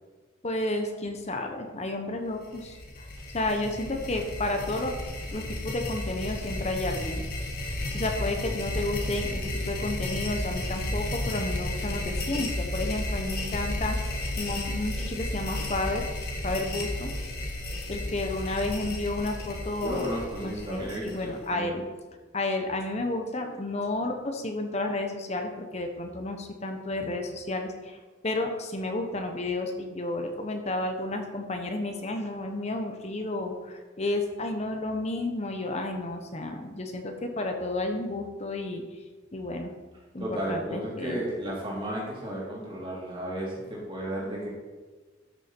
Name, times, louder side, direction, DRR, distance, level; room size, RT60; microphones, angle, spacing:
voice 1, 0.4-3.1 3.3-4.9 5.3-7.2 7.9-16.1 16.4-17.1 17.9-21.8 22.3-38.8 39.3-39.7 40.1-41.2, left 2 dB, 35° left, 4 dB, 1.0 m, -31 dB
sound 1, 2.4-21.5, left 1 dB, 50° left, 1.8 m, -33 dB
voice 2, 19.8-21.8 40.2-44.5, right 1 dB, 25° right, -5 dB, 3.4 m, -33 dB
13.0 x 7.0 x 4.5 m, 1.3 s
head